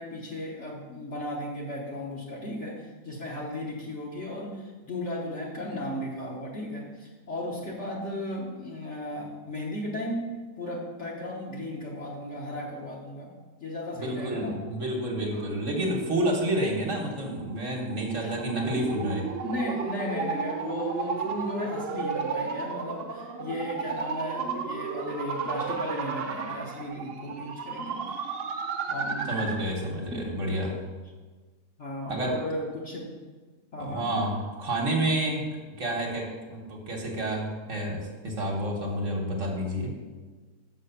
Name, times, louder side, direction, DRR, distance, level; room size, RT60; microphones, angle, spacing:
voice 1, 0.0-10.2 10.6-13.3 13.6-14.6 15.3-15.5 18.2-18.4 19.4-28.2 28.9-29.4 30.1-30.2 31.8-33.1 33.7-34.0 38.8-39.0, left 1 dB, 45° left, -4 dB, 1.3 m, -35 dB
voice 2, 14.0-19.3 29.2-30.8 32.1-32.4 33.8-35.4 35.8-39.9, right 1 dB, 50° right, 0 dB, 1.4 m, -29 dB
sound 1, 17.1-29.7, right 5 dB, 65° right, 0.5 m, -33 dB
6.1 x 5.8 x 6.7 m, 1.4 s
omnidirectional pair, 1.8 m